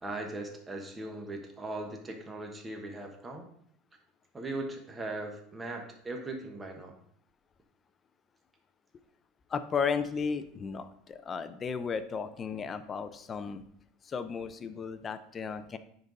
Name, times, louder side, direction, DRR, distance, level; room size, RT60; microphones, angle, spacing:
voice 1, 0.0-3.5 4.3-7.0, right 2 dB, 15° right, 2 dB, 1.3 m, -39 dB
voice 2, 9.5-13.6 14.0-15.8, left 6 dB, 30° left, 11 dB, 0.6 m, -34 dB
10.0 x 4.0 x 4.0 m, 0.65 s
supercardioid pair, 115°, 0 cm